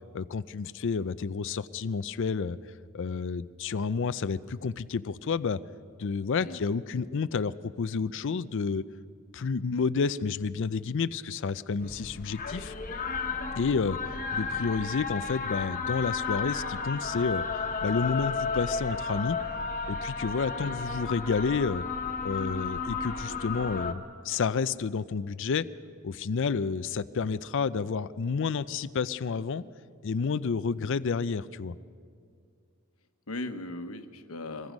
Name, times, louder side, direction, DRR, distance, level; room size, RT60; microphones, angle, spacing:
voice 1, 0.1-2.6 2.9-5.6 6.0-8.8 9.3-12.7 13.6-19.4 19.9-21.8 22.2-25.7 26.0-29.6 30.0-31.7, left 5 dB, 55° left, 16 dB, 0.4 m, -30 dB
sound 1, 11.8-23.9, left 4 dB, 35° left, 1.3 m, -33 dB
voice 2, 33.3-34.7, left 2 dB, 75° left, 8 dB, 1.2 m, -38 dB
25.0 x 21.0 x 5.3 m, 2.1 s
head